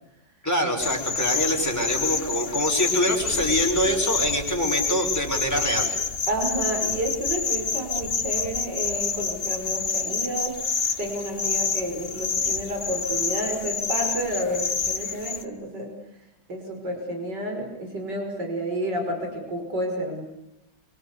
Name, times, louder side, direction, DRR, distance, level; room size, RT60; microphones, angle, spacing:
voice 1, 0.4-6.0, equal, 10° left, 2 dB, 5.7 m, -25 dB
sound 1, 0.8-15.4, left 5 dB, 35° left, 1.3 m, -28 dB
voice 2, 6.3-10.6 11.0-15.9 16.5-20.2, right 1 dB, 65° right, 3 dB, 6.3 m, -30 dB
26.0 x 26.0 x 8.3 m, 0.91 s
omnidirectional pair, 2.0 m